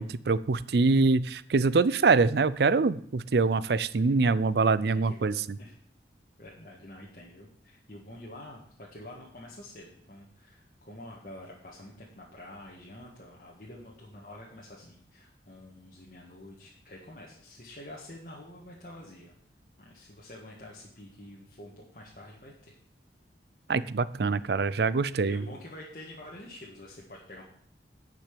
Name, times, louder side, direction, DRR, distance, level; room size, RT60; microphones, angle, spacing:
voice 1, 0.0-5.3 23.7-25.4, right 4 dB, 60° right, 18 dB, 0.5 m, -24 dB
voice 2, 4.9-5.7 6.4-19.4 19.8-22.8 25.2-27.4, left 1 dB, 45° left, -4 dB, 1.8 m, -47 dB
10.5 x 6.0 x 7.5 m, 0.63 s
head